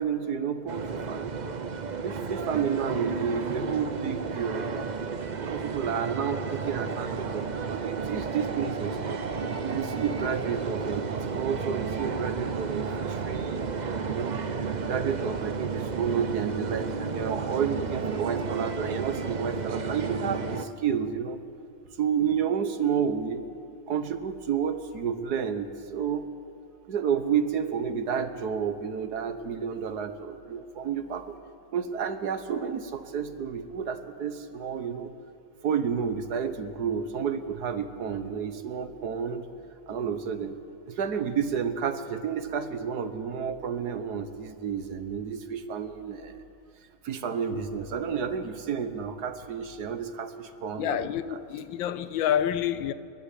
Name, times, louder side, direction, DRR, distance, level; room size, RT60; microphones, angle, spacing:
voice 1, 0.0-1.4 2.0-4.9 5.4-9.2 9.6-13.7 14.0-14.4 14.9-21.4 22.0-23.4 23.9-26.3 26.9-31.4 31.7-35.1 35.6-39.4 39.9-40.6 40.9-46.4 47.0-51.1, right 7 dB, 60° right, 1.5 m, -31 dB
sound 1, 0.7-20.6, right 5 dB, 80° right, 0.4 m, -32 dB
voice 2, 50.8-52.9, left 10 dB, 90° left, 1.5 m, -28 dB
28.5 x 11.5 x 8.3 m
omnidirectional pair, 2.0 m